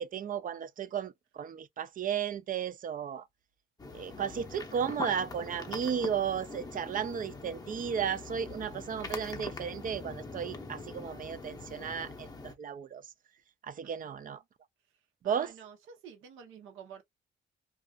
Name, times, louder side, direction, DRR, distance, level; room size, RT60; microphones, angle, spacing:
voice 1, 0.0-3.3 3.9-13.1 13.6-14.4 15.2-15.5, right 8 dB, 45° right, 0.4 m, -34 dB
sound 1, 3.8-12.5, left 3 dB, 20° left, 0.7 m, -43 dB
voice 2, 13.8-14.4 15.2-17.0, right 7 dB, 85° right, 0.9 m, -50 dB
2.4 x 2.4 x 2.3 m
cardioid pair, 90°, 20 cm